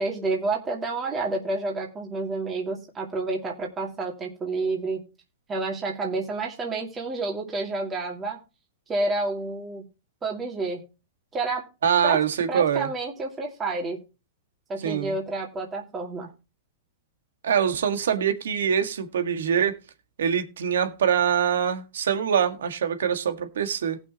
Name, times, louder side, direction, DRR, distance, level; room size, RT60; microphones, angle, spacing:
voice 1, 0.0-5.0 5.5-8.4 8.9-9.8 10.2-10.8 11.3-11.6 12.0-12.2 12.5-14.0 14.7-16.3, right 3 dB, 15° right, 2.4 m, -29 dB
voice 2, 11.8-12.9 14.8-15.1 17.4-19.8 20.2-24.0, right 8 dB, 85° right, 1.8 m, -24 dB
18.5 x 6.1 x 2.9 m
hypercardioid pair, 150°, 0 cm